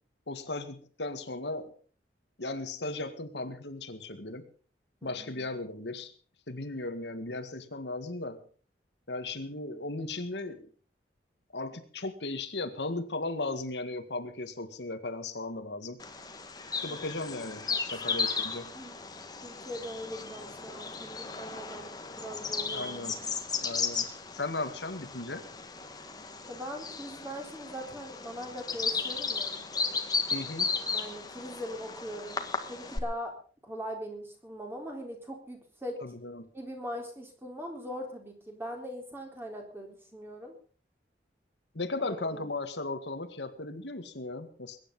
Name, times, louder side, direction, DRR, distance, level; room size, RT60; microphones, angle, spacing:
voice 1, 0.3-1.7 2.4-4.5 5.0-6.1 6.5-8.4 9.1-10.6 11.5-16.0 16.8-18.7 22.7-23.2 23.6-25.4 30.3-30.7 36.0-36.5 41.7-44.8, left 2 dB, 80° left, 8 dB, 1.9 m, -36 dB
voice 2, 5.0-5.5 16.9-17.0 17.7-17.8 18.7-19.0 19.4-23.2 26.5-29.7 30.9-33.3 33.6-36.2 36.5-40.5 42.0-42.5, equal, 15° right, 2 dB, 4.0 m, -41 dB
Bird vocalization bird call bird song, 16.0-33.0, left 4 dB, 20° left, 1.6 m, -35 dB
21.5 x 10.0 x 5.5 m, 0.41 s
head